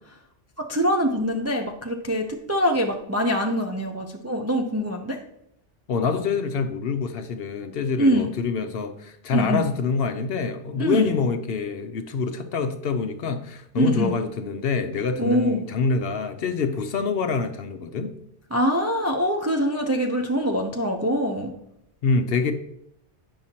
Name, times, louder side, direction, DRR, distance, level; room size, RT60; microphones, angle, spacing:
voice 1, 0.6-5.2 8.0-8.3 9.3-9.6 10.8-11.2 13.8-14.1 15.2-15.6 18.5-21.5, equal, 25° right, 3 dB, 0.3 m, -24 dB
voice 2, 5.9-18.1 22.0-22.5, left 4 dB, 65° left, 8 dB, 0.8 m, -26 dB
8.9 x 5.5 x 2.8 m, 0.78 s
omnidirectional pair, 1.2 m